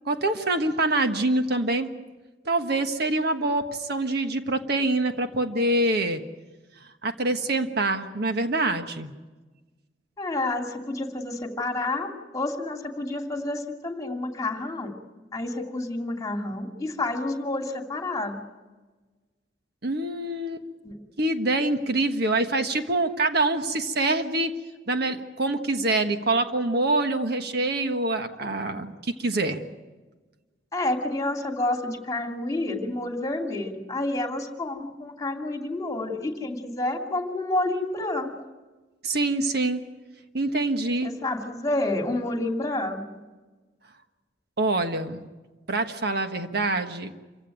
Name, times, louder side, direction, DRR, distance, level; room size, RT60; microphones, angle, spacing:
voice 1, 0.0-1.9 2.4-6.2 6.8-9.1 19.8-20.7 21.2-24.5 24.9-29.6 39.0-39.8 40.3-41.1 44.6-45.3 45.7-47.1, right 2 dB, 60° right, 7 dB, 1.4 m, -25 dB
voice 2, 10.2-14.9 15.3-18.4 20.8-21.0 28.4-28.6 30.7-38.3 41.0-43.2, left 2 dB, 20° left, 3 dB, 2.5 m, -29 dB
27.0 x 16.0 x 9.3 m, 1.3 s
head